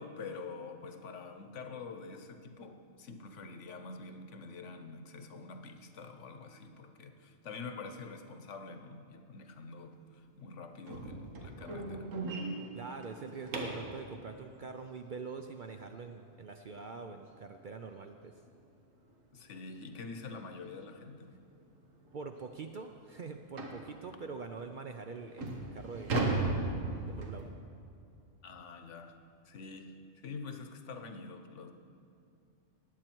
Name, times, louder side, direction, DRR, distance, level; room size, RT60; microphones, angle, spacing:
voice 1, 0.0-12.1 19.3-21.3 27.7-27.8 28.4-29.2 29.5-30.0 30.2-31.7, left 4 dB, 70° left, 7 dB, 1.2 m, -46 dB
sound 1, 10.9-14.0 16.8-16.9 17.4-17.5 17.9-18.0 18.5-18.6 19.7-19.8 20.2-20.4 21.0-21.1 21.5-21.6 22.1-22.2 23.6-23.9 24.6-24.7 25.2-27.5, right 2 dB, 85° right, 1.6 m, -36 dB
voice 2, 12.7-18.3 22.1-26.2 27.1-27.5, right 4 dB, 55° right, 5 dB, 0.6 m, -44 dB
18.5 x 8.1 x 4.5 m, 2.6 s
omnidirectional pair, 1.3 m